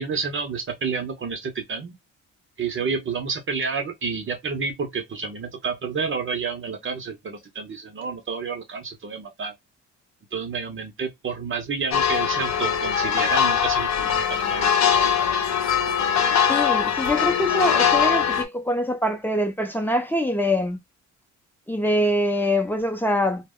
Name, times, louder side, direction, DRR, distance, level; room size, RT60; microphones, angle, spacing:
voice 1, 0.0-1.9 2.6-9.5 10.3-15.0, right 5 dB, 40° right, 0.7 m, -30 dB
sound 1, 11.9-18.4, left 8 dB, 65° left, 0.7 m, -21 dB
voice 2, 16.5-20.8 21.7-23.5, equal, 5° left, 0.6 m, -24 dB
2.1 x 2.0 x 3.6 m
cardioid pair, 90°, 30 cm